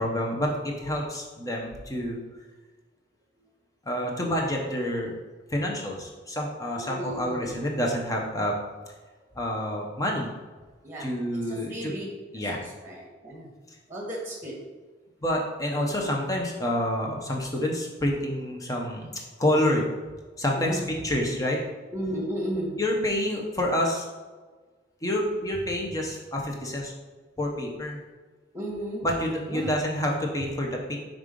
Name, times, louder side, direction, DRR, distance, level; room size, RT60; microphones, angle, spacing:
voice 1, 0.0-2.2 3.9-5.1 5.5-8.6 9.4-10.3 11.0-11.9 12.3-12.6 15.2-19.9 20.4-21.6 22.8-24.1 25.0-26.9 27.4-28.0 29.0-31.0, left 1 dB, 15° left, 0 dB, 0.8 m, -28 dB
voice 2, 6.8-7.5 10.8-11.1 11.5-12.1 12.4-13.5 13.9-14.6 20.6-20.8 21.9-22.8 28.5-29.1 29.5-29.7, right 1 dB, 10° right, -2 dB, 1.3 m, -34 dB
5.4 x 3.7 x 5.2 m, 1.4 s
head